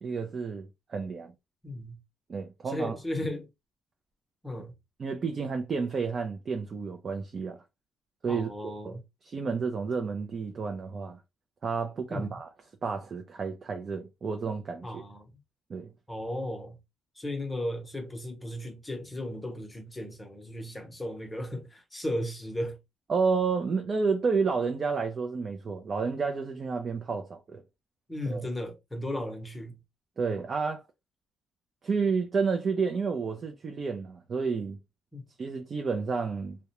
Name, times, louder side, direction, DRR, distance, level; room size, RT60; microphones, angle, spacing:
voice 1, 0.0-1.3 2.3-3.0 5.0-7.6 8.2-9.0 9.2-11.2 11.6-12.5 12.8-14.9 15.7-15.9 23.1-27.6 28.3-28.4 30.2-30.8 31.8-34.8 35.4-36.6, right 5 dB, 45° right, 0.4 m, -30 dB
voice 2, 1.6-2.0 2.7-3.5 4.4-4.7 8.3-9.0 12.1-12.4 14.8-15.3 16.1-16.8 17.2-22.8 28.1-29.8 35.1-35.2, left 1 dB, 15° left, 0.8 m, -35 dB
2.3 x 2.1 x 2.9 m
cardioid pair, 90°, 0 cm